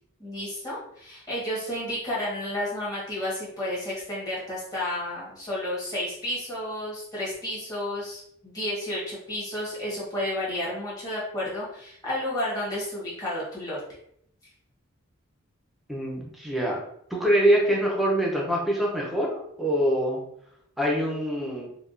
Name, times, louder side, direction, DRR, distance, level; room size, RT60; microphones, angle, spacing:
voice 1, 0.2-13.8, left 1 dB, 15° left, -8 dB, 1.3 m, -31 dB
voice 2, 15.9-16.8 17.1-20.2 20.8-21.7, equal, ahead, -3 dB, 0.6 m, -24 dB
4.6 x 2.3 x 2.5 m, 0.71 s
head